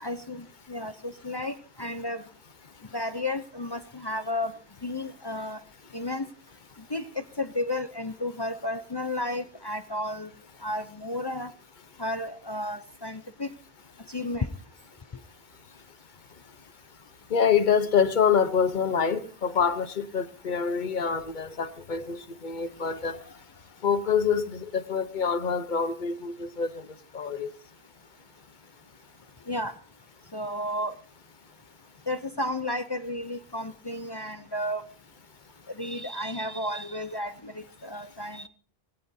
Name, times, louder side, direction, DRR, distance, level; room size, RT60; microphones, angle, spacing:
voice 1, 0.0-2.2 2.9-4.6 4.8-5.6 5.9-6.3 6.9-10.3 10.6-11.5 12.0-13.5 14.1-14.5 29.5-29.8 30.3-30.9 32.1-34.8 35.7-38.5, left 1 dB, 30° left, 0.6 m, -32 dB
voice 2, 17.3-23.2 23.8-26.9 27.1-27.5, left 6 dB, 50° left, 1.1 m, -26 dB
21.5 x 16.5 x 2.7 m
omnidirectional pair, 1.0 m